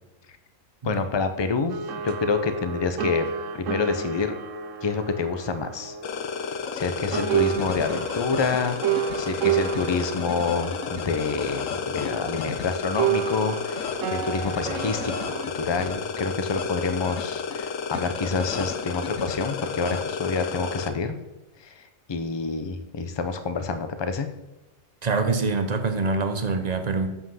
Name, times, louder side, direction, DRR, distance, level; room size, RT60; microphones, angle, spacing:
voice 1, 0.8-3.3 3.5-4.3 4.8-6.0 6.7-15.1 15.5-21.2 21.6-24.3, left 4 dB, 30° left, 9 dB, 0.5 m, -27 dB
sound 1, 1.7-6.9 7.1-12.6 13.0-15.5, right 9 dB, 70° right, 0.9 m, -31 dB
sound 2, 6.0-20.9, left 5 dB, 70° left, 1.1 m, -32 dB
voice 2, 25.0-27.2, right 4 dB, 35° right, 7 dB, 0.8 m, -25 dB
7.6 x 5.7 x 5.7 m, 1.1 s
omnidirectional pair, 1.5 m